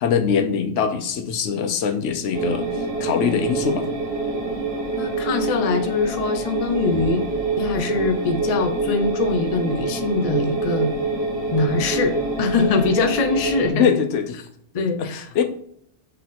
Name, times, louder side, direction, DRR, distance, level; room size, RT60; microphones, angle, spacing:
voice 1, 0.0-3.8 13.7-14.4 14.8-15.4, left 7 dB, 80° left, 7 dB, 1.0 m, -22 dB
sound 1, 2.3-13.7, right 3 dB, 60° right, 1.7 m, -26 dB
voice 2, 5.0-7.2 7.6-10.9 11.5-13.9 14.7-15.4, left 4 dB, 45° left, 6 dB, 0.5 m, -23 dB
4.0 x 3.2 x 4.1 m, 0.66 s
omnidirectional pair, 1.2 m